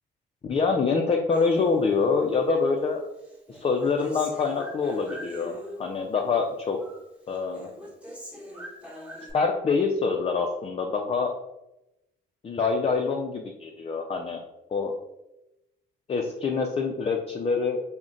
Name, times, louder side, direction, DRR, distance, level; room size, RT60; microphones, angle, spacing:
voice 1, 0.4-3.0 3.5-6.8 7.3-7.7 9.3-11.3 12.4-14.4 14.7-14.9 16.1-17.8, left 4 dB, 30° left, 2 dB, 0.4 m, -25 dB
Human voice, 1.3-2.5 2.8-6.0 6.3-7.1 7.3-9.3, equal, 5° right, 1.1 m, -43 dB
3.7 x 2.1 x 3.6 m, 0.92 s
cardioid pair, 90°, 20 cm